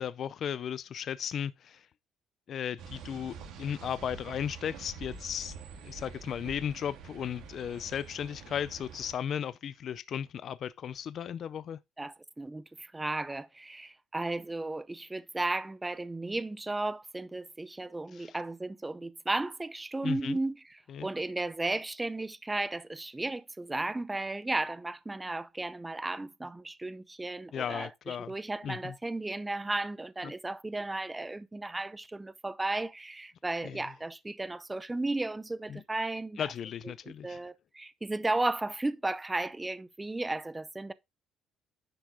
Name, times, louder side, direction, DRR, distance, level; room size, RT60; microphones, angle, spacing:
voice 1, 0.0-1.9 2.5-5.6 5.8-11.8 18.1-18.4 20.0-20.4 20.9-21.1 27.5-28.3 28.6-28.9 30.2-30.3 33.6-33.8 35.7-35.8 36.4-37.4, left 8 dB, 45° left, 0.4 m, -35 dB
sound 1, 2.8-9.1, right 6 dB, 75° right, 2.9 m, -46 dB
voice 2, 12.0-36.4 37.0-40.9, right 2 dB, 10° right, 0.5 m, -34 dB
10.0 x 6.0 x 3.7 m
cardioid pair, 130°, 0 cm